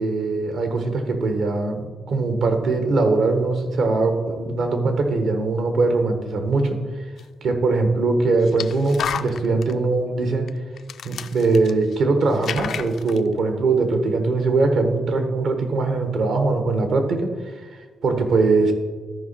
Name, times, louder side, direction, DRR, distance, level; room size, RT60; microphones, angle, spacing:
voice 1, 0.0-6.8 7.4-10.5 11.0-17.3 18.0-18.7, right 3 dB, 75° right, 6 dB, 1.3 m, -21 dB
sound 1, 7.2-7.3 8.4-9.7 10.5-10.6 10.8-12.0 12.3-13.2, left 8 dB, 70° left, 0.4 m, -31 dB
13.0 x 5.2 x 4.2 m, 1.5 s
cardioid pair, 85°, 0 cm